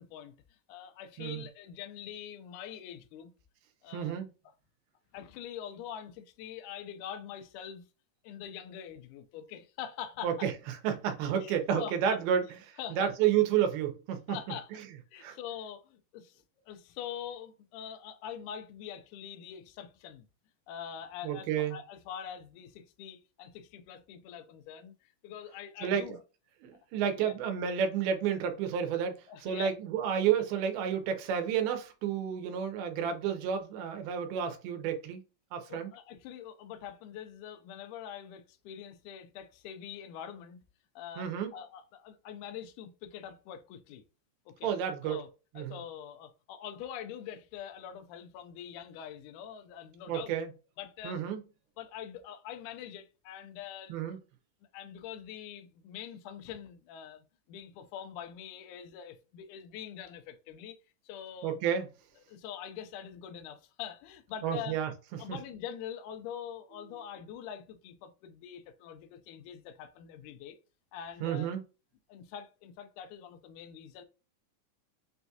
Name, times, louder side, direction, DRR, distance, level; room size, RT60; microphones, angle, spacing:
voice 1, 0.0-3.3 3.8-4.2 5.1-7.9 8.2-10.5 11.4-12.5 12.8-13.1 14.3-14.7 15.1-20.3 20.7-26.2 26.7-27.3 29.3-29.7 35.7-40.6 41.0-44.0 44.5-44.7 45.0-45.3 45.6-50.3 50.8-51.2 51.8-54.0 54.7-60.8 61.0-61.6 62.3-64.8 65.2-70.6 70.9-71.5 72.1-74.0, left 9 dB, 80° left, 1.8 m, -44 dB
voice 2, 3.9-4.3 10.2-10.5 10.8-12.4 13.0-14.4 15.2-15.4 21.2-21.8 25.8-26.0 26.6-35.2 35.5-35.9 41.2-41.5 44.6-45.2 45.6-45.8 50.1-50.5 51.0-51.4 53.9-54.2 61.4-61.9 64.4-64.9 65.3-65.4 71.2-71.6, right 8 dB, 85° right, 2.6 m, -30 dB
5.9 x 2.3 x 2.7 m
omnidirectional pair, 4.2 m